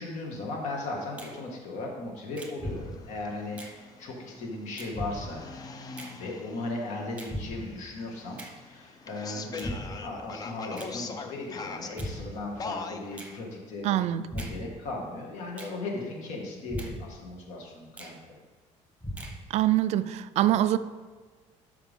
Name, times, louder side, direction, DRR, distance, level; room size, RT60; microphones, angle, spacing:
voice 1, 0.0-5.4 6.1-14.0 14.3-18.4, left 2 dB, 65° left, -1 dB, 2.1 m, -37 dB
Finger snapping, 1.2-1.4 2.4-2.6 3.6-3.8 4.8-5.0 6.0-6.2 7.2-7.4 8.4-8.6 9.6-9.8 10.8-11.0 12.0-12.2 13.2-13.4 14.4-14.6 15.6-15.8 16.8-17.0 18.0-18.2 19.2-19.4, right 2 dB, 10° right, 0.9 m, -45 dB
sound 1, 2.6-3.2 4.9-5.6 7.3-7.9 9.6-10.2 11.9-12.6 14.3-14.9 16.7-17.3 19.0-19.6, equal, 15° left, 1.3 m, -38 dB
sound 2, 2.7-13.4, left 4 dB, 30° left, 0.6 m, -43 dB
voice 2, 13.8-14.2 19.5-20.8, right 13 dB, 55° right, 13 dB, 0.4 m, -24 dB
12.0 x 5.9 x 3.7 m, 1.4 s
cardioid pair, 165°, 13 cm